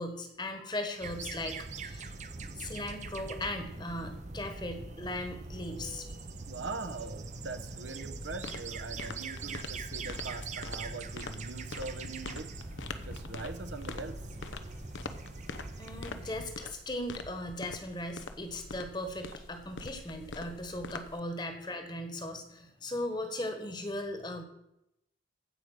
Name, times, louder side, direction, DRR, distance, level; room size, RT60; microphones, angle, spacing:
voice 1, 0.0-2.1 2.5-6.2 15.8-24.4, left 1 dB, 25° left, 6 dB, 1.3 m, -38 dB
sound 1, 1.0-16.5, right 3 dB, 40° right, 0.7 m, -42 dB
voice 2, 6.4-12.5 13.1-14.2, right 3 dB, 70° right, 9 dB, 0.9 m, -42 dB
sound 2, 8.2-21.2, left 3 dB, 80° left, 0.9 m, -45 dB
15.5 x 5.2 x 6.4 m, 0.84 s
head